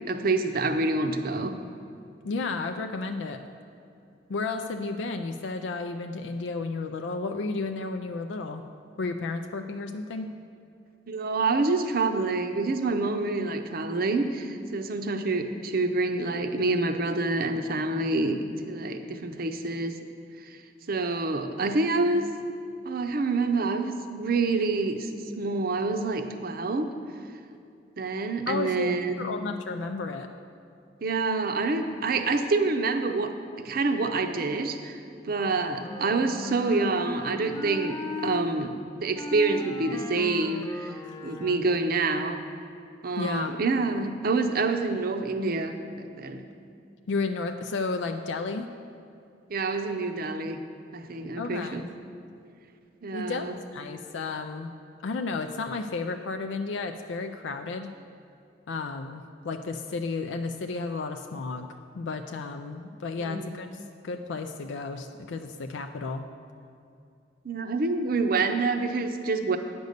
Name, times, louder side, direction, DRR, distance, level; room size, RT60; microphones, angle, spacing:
voice 1, 0.1-1.5 11.1-20.0 20.9-22.2 22.8-26.9 28.0-29.3 31.0-35.0 35.2-38.7 39.0-40.9 41.2-42.4 43.0-46.4 49.5-50.6 50.9-51.8 53.0-53.5 63.2-63.6 67.4-69.6, right 3 dB, 55° right, 7 dB, 0.6 m, -27 dB
voice 2, 2.2-3.4 4.3-8.6 9.0-10.3 28.5-30.3 43.2-43.5 47.1-48.7 51.4-51.9 53.1-53.5 53.7-54.7 55.0-57.9 58.7-66.3, left 3 dB, 90° left, 6 dB, 0.4 m, -32 dB
Wind instrument woodwind instrument, 35.2-38.5 39.1-41.9, left 2 dB, 20° left, 0.4 m, -37 dB
9.4 x 5.3 x 6.5 m, 2.5 s
head